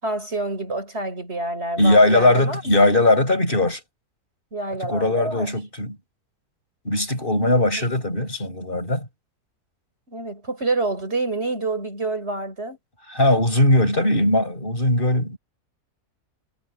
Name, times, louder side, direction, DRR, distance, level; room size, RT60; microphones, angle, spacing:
voice 1, 0.0-2.7 4.5-5.5 7.5-7.6 10.1-12.8, right 2 dB, 45° right, 6.1 m, -27 dB
voice 2, 1.8-3.8 4.8-6.0 6.9-9.1 13.1-15.4, left 1 dB, 35° left, 6.9 m, -19 dB
omnidirectional pair, 1.6 m